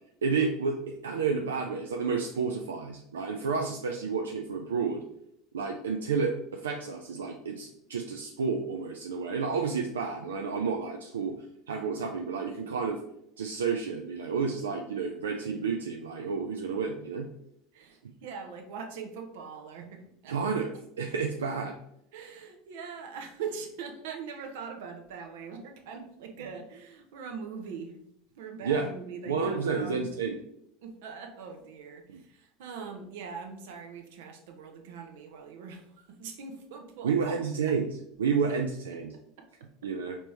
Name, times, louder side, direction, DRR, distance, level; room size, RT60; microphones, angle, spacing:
voice 1, 0.2-5.0 5.5-11.4 11.7-13.0 13.4-17.3 20.3-20.7 21.0-21.8 28.6-28.9 29.3-30.4 32.1-32.2 37.0-37.9 38.2-39.1 39.8-40.2, right 5 dB, 90° right, 3 dB, 0.3 m, -30 dB
voice 2, 17.7-20.4 22.1-27.9 28.3-30.0 30.8-37.3 37.6-37.7 39.4-39.7, right 5 dB, 70° right, 4 dB, 0.7 m, -42 dB
4.4 x 2.8 x 3.2 m, 0.75 s
hypercardioid pair, 85°, 0 cm